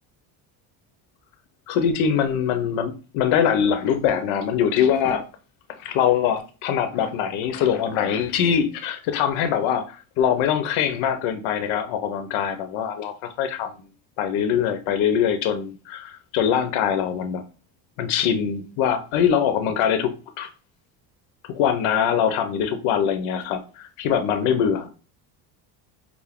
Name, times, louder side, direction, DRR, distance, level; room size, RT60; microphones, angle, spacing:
voice 1, 1.7-5.2 5.8-13.7 14.2-17.4 18.0-20.5 21.5-24.9, left 8 dB, 70° left, 0.8 m, -23 dB
4.7 x 2.1 x 3.5 m
supercardioid pair, 85°, 50 cm